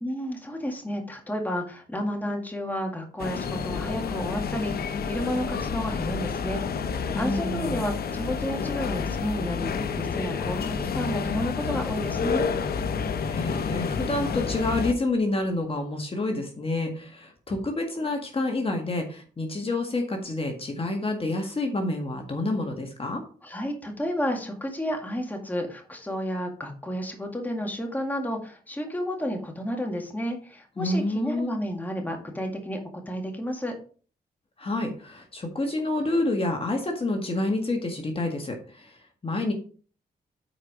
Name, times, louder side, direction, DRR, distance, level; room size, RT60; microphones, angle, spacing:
voice 1, 0.0-6.6 6.9-9.7 10.0-12.5 23.4-32.8 33.1-33.8, equal, 10° left, 2 dB, 2.0 m, -31 dB
sound 1, 3.2-14.9, left 5 dB, 65° left, 0.8 m, -29 dB
voice 2, 7.1-7.9 13.3-23.2 30.8-31.6 34.6-39.5, left 2 dB, 35° left, 3 dB, 1.8 m, -28 dB
8.8 x 4.8 x 4.8 m, 0.41 s
cardioid pair, 85°, 17 cm